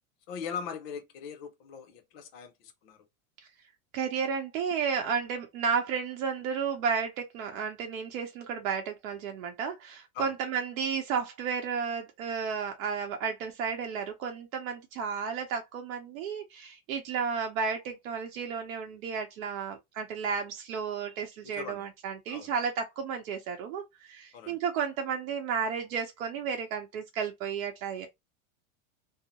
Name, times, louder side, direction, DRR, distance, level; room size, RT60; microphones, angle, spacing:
voice 1, 0.3-3.0 10.1-10.3 21.4-21.8 22.3-22.5 24.3-24.6, left 6 dB, 45° left, 0.6 m, -40 dB
voice 2, 3.9-28.1, right 6 dB, 80° right, 0.8 m, -33 dB
2.7 x 2.0 x 2.8 m
supercardioid pair, 165°, 41 cm